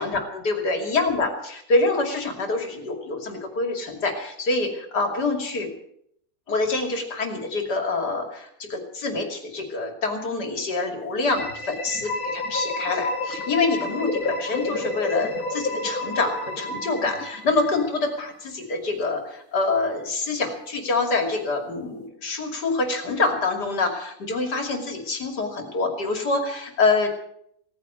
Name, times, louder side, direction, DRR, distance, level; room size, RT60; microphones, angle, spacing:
voice 1, 0.0-5.7 6.5-27.1, left 3 dB, 85° left, 4 dB, 3.3 m, -26 dB
sound 1, 11.3-18.0, left 2 dB, 55° left, 2.6 m, -30 dB
17.5 x 9.5 x 8.0 m, 0.71 s
omnidirectional pair, 1.7 m